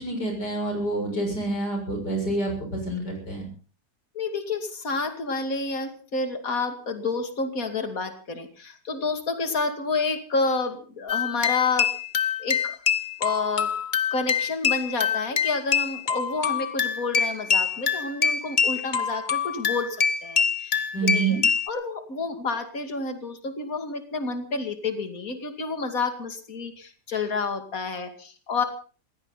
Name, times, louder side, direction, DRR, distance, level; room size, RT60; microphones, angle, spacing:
voice 1, 0.0-3.4 20.9-21.4, right 3 dB, 75° left, 2 dB, 7.5 m, -27 dB
voice 2, 4.1-11.9 12.4-12.8 13.2-13.7 14.1-21.4 21.7-28.6, left 4 dB, 55° left, 7 dB, 2.9 m, -29 dB
sound 1, 11.1-21.7, left 6 dB, 35° left, 0.9 m, -25 dB
20.5 x 17.0 x 4.0 m, 0.39 s
omnidirectional pair, 1.8 m